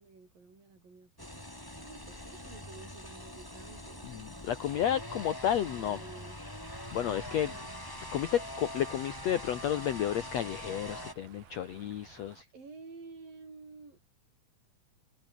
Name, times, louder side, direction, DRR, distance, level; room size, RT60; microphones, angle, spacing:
voice 1, 0.0-1.4 1.7-4.1 5.5-6.4 7.2-7.7 12.5-14.0, right 4 dB, 65° right, 9.1 m, -51 dB
hedge-shears, 1.2-11.1, left 1 dB, 5° left, 3.9 m, -43 dB
voice 2, 4.0-6.0 6.9-7.5 8.1-12.5, left 10 dB, 65° left, 1.8 m, -32 dB
sound 1, 6.6-12.4, right 7 dB, 80° right, 5.2 m, -55 dB
omnidirectional pair, 4.2 m